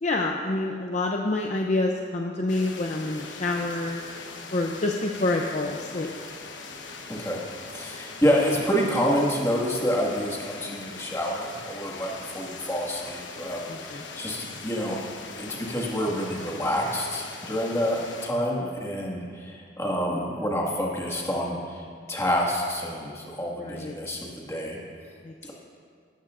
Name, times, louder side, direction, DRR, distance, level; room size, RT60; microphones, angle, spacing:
voice 1, 0.0-4.0 4.5-6.2 13.7-14.0 23.6-23.9 25.2-25.3, left 2 dB, 40° left, 1 dB, 0.6 m, -27 dB
sound 1, 2.5-18.3, left 4 dB, 75° left, 1.1 m, -41 dB
voice 2, 7.1-7.4 7.7-15.0 15.4-24.8, equal, 15° left, -3 dB, 1.9 m, -28 dB
17.5 x 13.0 x 2.6 m, 2.2 s
head